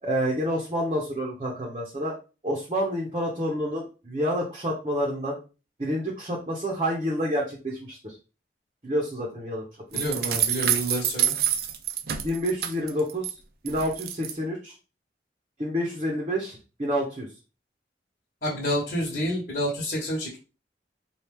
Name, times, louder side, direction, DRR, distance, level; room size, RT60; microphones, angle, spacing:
voice 1, 0.0-2.1 2.4-5.4 5.8-8.2 8.8-9.6 9.9-10.2 12.2-13.3 13.6-14.7 15.6-17.3, equal, 30° right, -2 dB, 0.8 m, -28 dB
voice 2, 9.9-11.3 18.4-20.4, equal, 50° left, -5 dB, 1.3 m, -28 dB
sound 1, 9.9-13.3 13.7-14.3, right 11 dB, 60° right, 0.4 m, -27 dB
4.4 x 2.4 x 3.4 m, 0.32 s
head